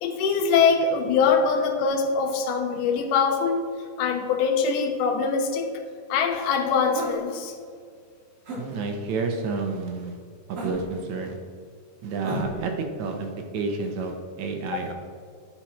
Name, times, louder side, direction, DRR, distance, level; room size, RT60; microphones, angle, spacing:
voice 1, 0.0-3.7 4.0-5.7 6.1-7.5 14.7-14.8, left 5 dB, 75° left, 3 dB, 2.2 m, -23 dB
sound 1, 6.9-7.2 8.4-8.6 10.5-11.0 12.2-12.6, right 1 dB, 50° right, 2.3 m, -32 dB
voice 2, 8.6-10.2 10.5-11.4 12.0-12.7 13.0-14.9, right 4 dB, 75° right, 4 dB, 1.8 m, -30 dB
8.7 x 5.2 x 3.0 m, 2.2 s
omnidirectional pair, 3.8 m